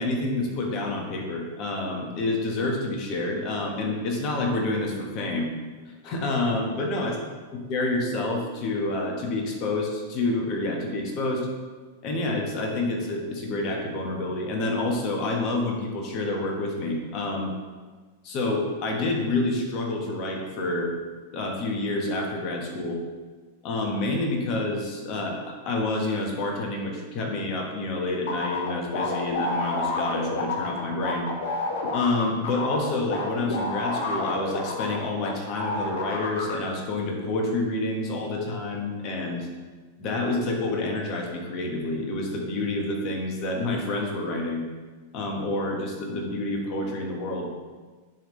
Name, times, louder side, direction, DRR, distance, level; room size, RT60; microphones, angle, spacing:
voice 1, 0.0-5.5 6.0-7.2 7.7-11.5 12.0-17.5 18.2-20.9 21.3-23.0 23.6-31.3 31.9-39.5 40.0-44.7 45.1-47.5, left 2 dB, 45° left, 0 dB, 1.5 m, -28 dB
sound 1, 28.3-35.3 35.6-36.5, left 3 dB, 75° left, 1.1 m, -29 dB
10.0 x 3.6 x 3.3 m, 1.4 s
hypercardioid pair, 115°, 0 cm